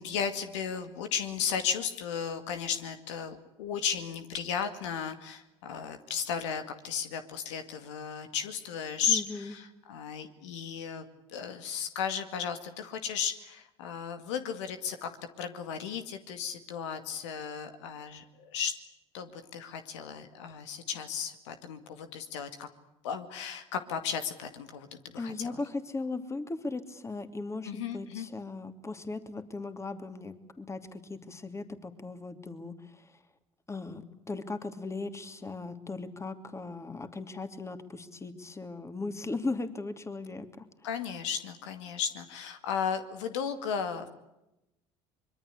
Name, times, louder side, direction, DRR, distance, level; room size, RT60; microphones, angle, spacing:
voice 1, 0.0-15.1 15.4-18.8 19.1-22.7 23.0-25.6 27.7-28.3 40.8-44.1, left 7 dB, 80° left, 8 dB, 2.2 m, -35 dB
voice 2, 9.1-9.6 25.2-33.2 33.7-34.0 34.3-40.7, left 3 dB, 20° left, 9 dB, 2.8 m, -38 dB
24.5 x 22.5 x 8.3 m, 0.91 s
hypercardioid pair, 70°, 15 cm